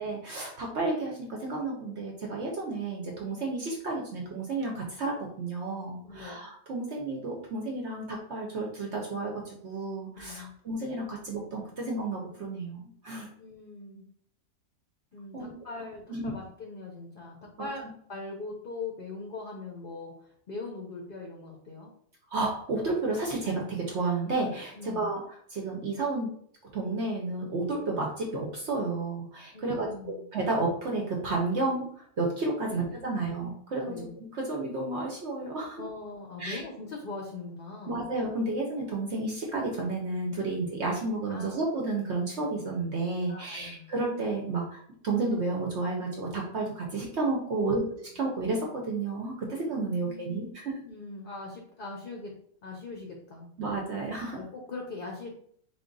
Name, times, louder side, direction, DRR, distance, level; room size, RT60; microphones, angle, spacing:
voice 1, 0.0-13.3 15.3-15.5 16.1-16.3 17.6-17.7 22.3-25.2 25.5-26.3 26.7-29.9 30.3-35.8 36.4-36.6 37.9-50.8 53.6-54.4, right 3 dB, 55° right, -1 dB, 0.9 m, -31 dB
voice 2, 6.0-6.4 10.1-10.5 13.4-14.0 15.1-21.9 24.7-25.1 29.5-30.2 32.6-33.2 33.9-34.1 35.8-38.0 41.3-41.6 43.3-43.9 47.5-47.8 49.9-50.5 50.8-52.3 52.6-53.5 54.4-55.3, left 3 dB, 50° left, 0 dB, 0.7 m, -41 dB
3.9 x 2.4 x 3.8 m, 0.63 s
omnidirectional pair, 1.5 m